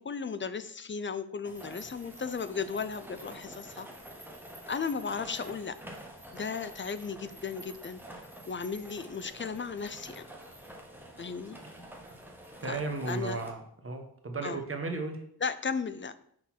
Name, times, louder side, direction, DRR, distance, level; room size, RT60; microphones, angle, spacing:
voice 1, 0.0-3.9 4.7-5.8 6.3-8.0 8.5-10.3 11.2-11.6 12.6-12.8 13.1-13.4 14.4-14.6 15.4-16.2, left 5 dB, 30° left, 12 dB, 0.4 m, -35 dB
sound 1, 1.4-13.5, right 1 dB, 5° right, 1.2 m, -48 dB
voice 2, 12.6-15.2, right 3 dB, 30° right, 4 dB, 1.2 m, -35 dB
6.1 x 3.9 x 4.4 m, 0.66 s
cardioid pair, 70°, 40 cm